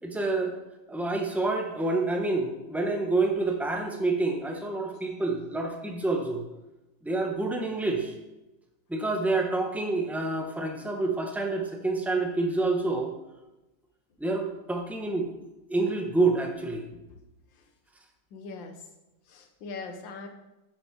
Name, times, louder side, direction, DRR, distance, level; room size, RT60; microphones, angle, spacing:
voice 1, 0.0-0.5 0.9-6.4 7.0-8.1 8.9-13.1 14.2-15.3 15.7-16.8, right 3 dB, ahead, 2 dB, 0.6 m, -28 dB
voice 2, 18.3-18.8 19.3-20.3, left 4 dB, 80° left, 5 dB, 1.8 m, -41 dB
8.1 x 7.4 x 5.2 m, 0.98 s
omnidirectional pair, 2.0 m